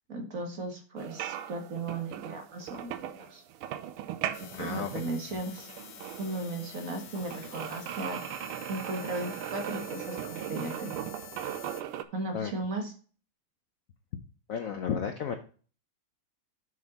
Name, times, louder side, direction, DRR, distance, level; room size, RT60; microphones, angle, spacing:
voice 1, 0.1-3.4 4.3-5.7 6.2-8.2 8.7-11.1 12.1-12.9, right 2 dB, 40° right, 4 dB, 1.6 m, -36 dB
sound 1, 1.0-12.0, right 11 dB, 85° right, 1.6 m, -39 dB
sound 2, 4.3-11.8, left 11 dB, 65° left, 1.1 m, -48 dB
voice 2, 4.5-4.9 12.3-12.5 14.5-15.4, left 7 dB, 85° left, 7 dB, 0.7 m, -32 dB
7.1 x 6.2 x 4.1 m, 0.39 s
omnidirectional pair, 2.4 m